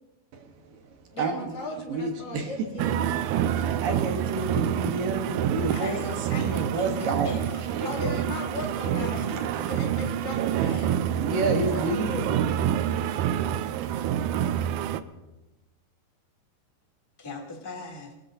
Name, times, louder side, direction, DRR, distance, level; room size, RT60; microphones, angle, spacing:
voice 1, 0.3-1.6 1.9-2.5 3.8-6.0 6.4-7.9 9.3-9.7 11.2-12.5, right 3 dB, 70° right, 4 dB, 2.8 m, -30 dB
voice 2, 1.1-4.0 7.8-9.2 9.5-11.0 11.3-12.4 14.3-14.7, left 2 dB, 65° left, -1 dB, 5.3 m, -38 dB
Band party, 2.8-15.0, right 10 dB, 90° right, 1.7 m, -27 dB
voice 3, 5.7-8.3 9.0-9.6 17.2-18.1, left 3 dB, 5° left, -1 dB, 2.2 m, -38 dB
26.5 x 19.0 x 2.7 m, 1.0 s
omnidirectional pair, 4.3 m